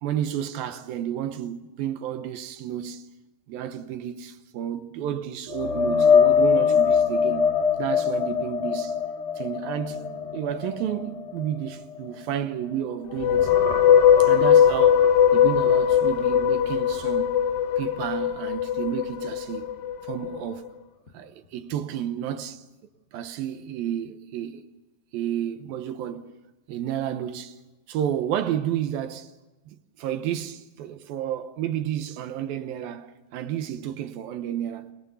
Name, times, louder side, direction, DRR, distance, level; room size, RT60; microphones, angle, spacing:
voice 1, 0.0-3.1 3.5-9.0 9.4-10.0 10.3-13.5 14.2-17.4 17.8-19.7 20.0-20.7 21.1-22.6 23.1-24.7 25.1-26.3 26.7-27.6 27.9-29.3 29.7-34.9, right 10 dB, 75° right, 2.7 m, -31 dB
sound 1, 5.5-12.9 13.2-17.1 17.5-17.7 21.1-21.2, left 6 dB, 35° left, 3.5 m, -25 dB
sound 2, 13.1-20.4, left 9 dB, 70° left, 2.6 m, -20 dB
27.0 x 21.0 x 6.9 m
omnidirectional pair, 4.5 m